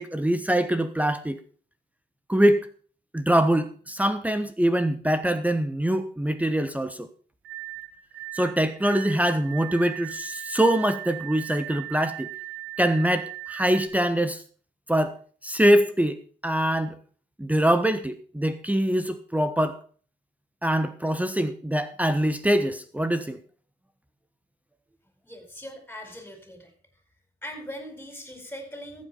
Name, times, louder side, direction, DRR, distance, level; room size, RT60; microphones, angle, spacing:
voice 1, 0.0-1.4 2.3-2.7 3.1-7.1 8.3-12.3 12.8-14.4 14.9-15.1 15.4-16.9 17.4-19.8 20.6-23.4, right 1 dB, 5° right, 10 dB, 1.2 m, -24 dB
sound 1, 7.4-13.9, right 18 dB, 85° right, 1.5 m, -38 dB
voice 2, 25.2-26.7 27.4-29.1, equal, 10° left, 6 dB, 4.9 m, -40 dB
14.0 x 8.3 x 5.6 m, 0.43 s
cardioid pair, 90°, 20 cm